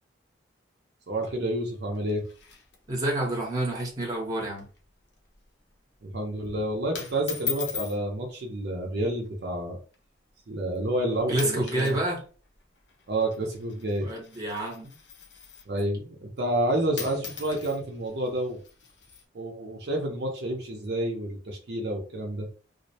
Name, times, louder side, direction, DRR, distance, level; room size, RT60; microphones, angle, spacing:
voice 1, 1.1-2.2 6.0-9.8 10.5-12.0 13.1-14.1 15.7-18.6 19.3-22.5, right 1 dB, 60° right, 0.5 m, -29 dB
sound 1, 1.9-3.2 3.5-3.6 3.9-4.1 4.5-4.8 5.2-5.5 6.2-6.5 6.9-8.0 9.0-9.3 9.9-10.0 10.8-11.0 11.3-12.0 12.3-15.8 16.6-16.7 16.9-19.2, left 8 dB, 65° left, 0.6 m, -39 dB
voice 2, 2.9-4.7 11.3-12.2 14.0-14.9, right 1 dB, 20° right, 0.8 m, -28 dB
2.4 x 2.0 x 2.7 m
head